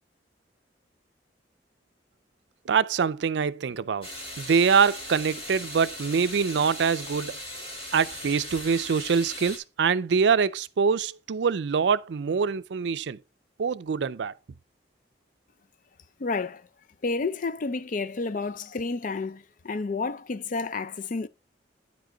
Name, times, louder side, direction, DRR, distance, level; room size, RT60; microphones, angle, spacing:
voice 1, 2.7-4.1 4.4-7.4 7.9-13.2 13.6-14.3, right 6 dB, 70° right, 0.4 m, -24 dB
sound 1, 4.0-9.6, left 1 dB, 30° left, 3.1 m, -39 dB
voice 2, 16.2-16.7 17.0-21.3, left 3 dB, 45° left, 0.4 m, -30 dB
9.6 x 5.1 x 3.8 m
head